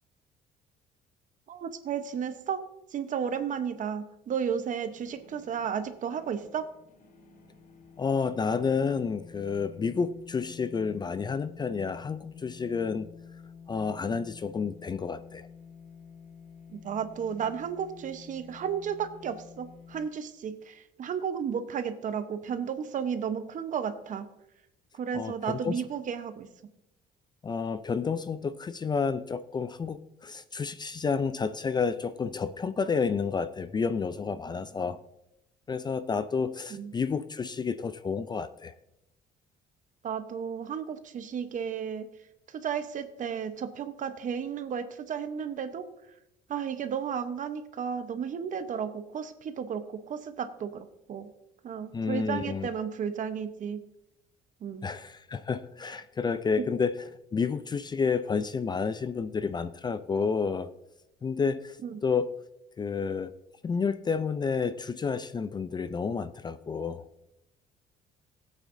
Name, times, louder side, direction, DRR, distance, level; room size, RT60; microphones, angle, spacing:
voice 1, 1.5-2.6 2.9-6.7 16.8-24.3 24.9-26.5 36.7-36.9 40.0-42.1 42.5-45.8 46.5-51.3 51.6-53.8 54.6-54.9 61.8-62.0, right 7 dB, 50° right, 10 dB, 0.9 m, -33 dB
sound 1, 4.5-20.1, left 6 dB, 50° left, 1.3 m, -50 dB
voice 2, 8.0-13.1 13.7-15.5 25.1-25.7 27.4-35.0 35.7-38.7 51.9-52.7 54.8-57.0 57.3-60.7 61.2-61.8 62.0-62.3 62.8-63.3 63.6-67.0, left 5 dB, 25° left, 13 dB, 0.4 m, -30 dB
16.5 x 8.3 x 2.7 m, 0.86 s
cardioid pair, 110°, 17 cm